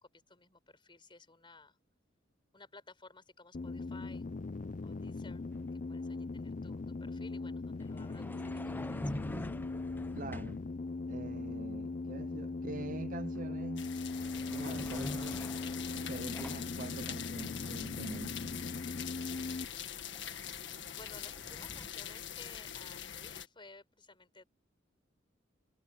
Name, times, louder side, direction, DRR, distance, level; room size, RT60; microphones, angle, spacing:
voice 1, 0.0-1.8 2.5-4.3 4.8-5.4 5.7-9.3 20.9-24.4, left 3 dB, 25° left, 4.6 m, -56 dB
sound 1, 3.5-19.7, left 3 dB, 40° left, 0.5 m, -40 dB
sound 2, 5.5-5.7 7.8-10.7 13.4-13.6 13.9-16.8 19.2-19.3 19.6-21.9, left 1 dB, 10° left, 0.8 m, -45 dB
voice 2, 10.1-10.6 11.1-13.9 14.5-15.4 15.9-18.6, right 3 dB, 45° right, 0.6 m, -44 dB
sound 3, 13.8-23.5, left 9 dB, 65° left, 1.7 m, -43 dB
head